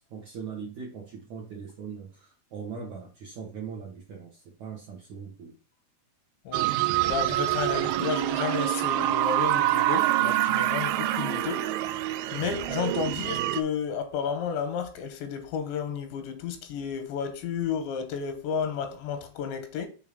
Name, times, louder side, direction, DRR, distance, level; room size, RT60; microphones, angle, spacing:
voice 1, 0.0-5.6, right 6 dB, 60° right, 2.0 m, -40 dB
sound 1, 6.5-13.6, right 14 dB, 85° right, 2.2 m, -26 dB
voice 2, 7.1-11.7 12.3-19.9, left 7 dB, 85° left, 3.3 m, -32 dB
7.1 x 3.7 x 5.1 m
omnidirectional pair, 5.0 m